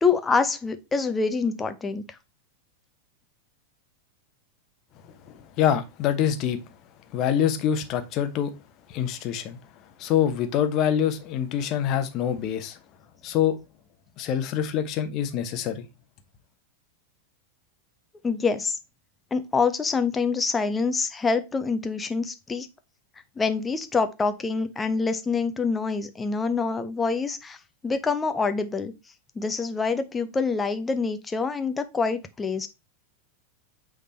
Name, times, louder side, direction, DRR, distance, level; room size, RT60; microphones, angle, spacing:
voice 1, 0.0-2.0 18.2-18.8 19.3-22.7 23.4-27.6 27.8-28.9 29.4-32.7, left 4 dB, 15° left, 0.9 m, -26 dB
voice 2, 5.0-6.6 7.1-8.5 8.9-9.6 10.0-12.8 13.2-13.6 14.2-15.8, left 9 dB, 40° left, 1.2 m, -25 dB
8.3 x 3.8 x 4.4 m
figure-of-eight pair, 90°, 0 cm